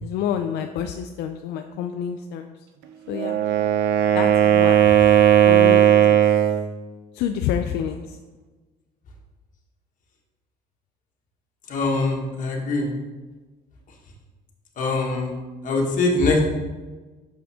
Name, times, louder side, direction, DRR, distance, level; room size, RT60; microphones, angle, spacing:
voice 1, 0.0-2.5 3.1-3.4 4.1-4.8 5.5-6.2 7.1-8.2, left 8 dB, 80° left, 6 dB, 0.4 m, -28 dB
Wind instrument woodwind instrument, 3.1-6.7, right 10 dB, 90° right, 0.6 m, -16 dB
voice 2, 11.7-12.9 14.8-15.4 15.6-16.4, left 3 dB, 50° left, -1 dB, 1.6 m, -22 dB
6.4 x 5.8 x 3.6 m, 1.3 s
cardioid pair, 110°, 17 cm